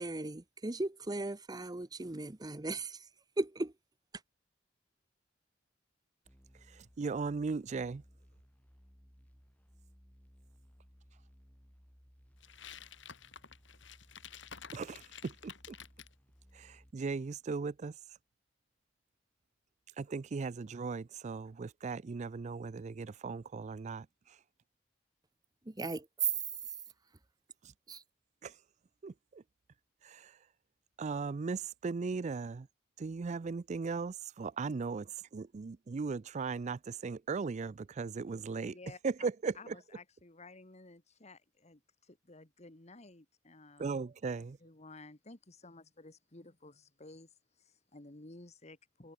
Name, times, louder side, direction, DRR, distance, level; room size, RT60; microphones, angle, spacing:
voice 1, 0.0-3.1 3.4-3.7 25.6-26.3 27.9-28.0, right 3 dB, 20° right, 0.8 m, -36 dB
sound 1, 6.3-16.9, equal, 10° left, 2.6 m, -62 dB
voice 2, 6.5-8.0 14.7-15.8 16.5-18.0 20.0-24.4 27.6-27.7 28.4-28.6 29.0-29.4 30.0-30.4 31.0-32.7 33.0-38.8 39.0-39.8 43.8-44.6, right 4 dB, 40° right, 0.4 m, -38 dB
sound 2, 12.4-16.1, left 7 dB, 70° left, 3.9 m, -51 dB
voice 3, 39.6-43.9 44.6-47.3 47.7-49.1, left 2 dB, 35° left, 2.0 m, -54 dB
head